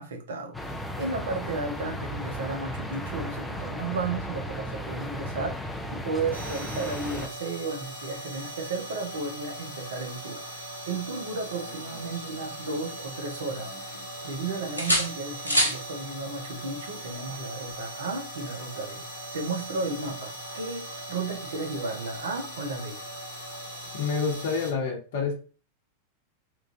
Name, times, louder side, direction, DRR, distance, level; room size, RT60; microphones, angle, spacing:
voice 1, 0.0-23.0, right 3 dB, 65° right, 0.7 m, -34 dB
sound 1, 0.5-7.3, left 1 dB, 5° left, 0.4 m, -35 dB
sound 2, 6.3-24.7, right 1 dB, 90° right, 0.9 m, -40 dB
sound 3, 11.6-13.2 13.5-14.4 14.8-15.8 17.7-17.9, equal, 85° left, 0.6 m, -29 dB
voice 2, 23.9-25.3, left 5 dB, 55° left, 0.8 m, -28 dB
3.0 x 2.4 x 2.5 m
figure-of-eight pair, 90°, 0 cm